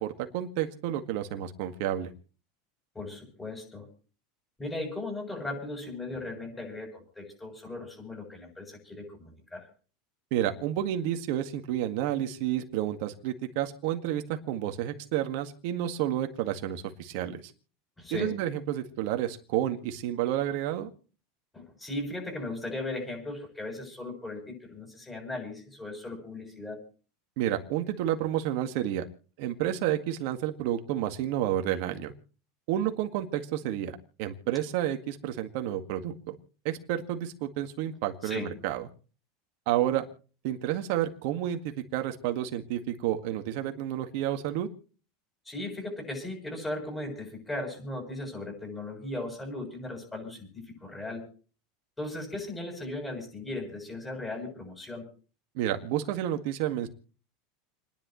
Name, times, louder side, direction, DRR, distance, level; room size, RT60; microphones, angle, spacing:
voice 1, 0.0-2.1 10.3-17.4 18.1-20.9 27.4-29.0 29.4-32.1 32.7-36.4 36.6-38.9 39.7-40.0 40.4-44.7 55.6-56.9, right 12 dB, 65° right, 6 dB, 1.8 m, -30 dB
voice 2, 2.9-3.8 4.6-9.7 18.0-18.3 21.5-26.8 38.2-38.5 45.4-51.2 52.0-55.0, left 2 dB, 10° left, 1 dB, 6.9 m, -37 dB
29.5 x 10.5 x 3.1 m, 0.39 s
supercardioid pair, 130°, 0 cm